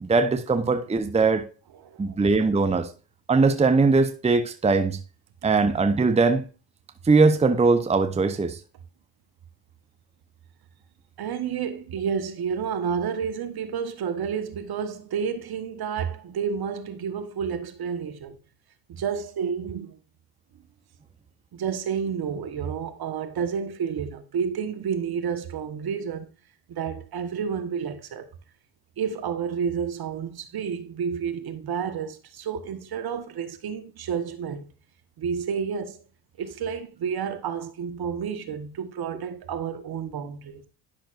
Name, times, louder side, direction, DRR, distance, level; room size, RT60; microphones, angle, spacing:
voice 1, 0.0-1.4 2.0-2.9 3.3-5.0 5.4-6.5 7.1-8.6, right 3 dB, 15° right, 0.8 m, -20 dB
voice 2, 1.8-2.2 11.2-18.4 18.9-20.0 21.5-26.3 26.7-28.3 29.0-34.7 35.2-36.0 36.4-40.6, right 7 dB, 55° right, 1.3 m, -30 dB
10.5 x 5.9 x 2.5 m
supercardioid pair, 75°, 45 cm